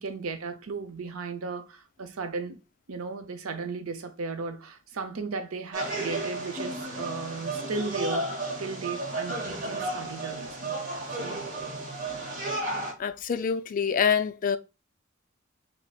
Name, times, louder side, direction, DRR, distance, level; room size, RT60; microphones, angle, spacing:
voice 1, 0.0-2.6 2.9-8.3 8.6-10.8 11.2-11.5, right 4 dB, 85° right, 0.6 m, -35 dB
sound 1, 5.7-12.9, right 2 dB, 40° right, 0.8 m, -33 dB
voice 2, 13.0-14.6, left 7 dB, 40° left, 0.3 m, -26 dB
5.3 x 2.1 x 2.3 m
head